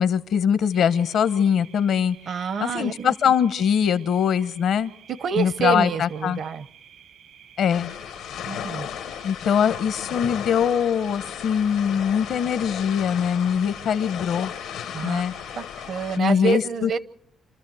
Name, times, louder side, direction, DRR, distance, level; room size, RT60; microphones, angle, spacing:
voice 1, 0.0-2.2 2.6-4.9 5.4-6.4 7.6-7.9 9.2-14.5 15.0-15.3 16.2-17.0, left 8 dB, 70° left, 15 dB, 0.8 m, -22 dB
sound 1, 0.7-16.4, right 9 dB, 80° right, 4.1 m, -51 dB
voice 2, 2.3-3.1 5.1-6.7 8.4-8.9 14.9-15.2 15.6-17.0, right 6 dB, 60° right, 17 dB, 0.8 m, -27 dB
sound 2, 7.7-16.2, left 9 dB, 90° left, 1.1 m, -35 dB
27.0 x 13.0 x 7.7 m, 0.78 s
cardioid pair, 90°, 0 cm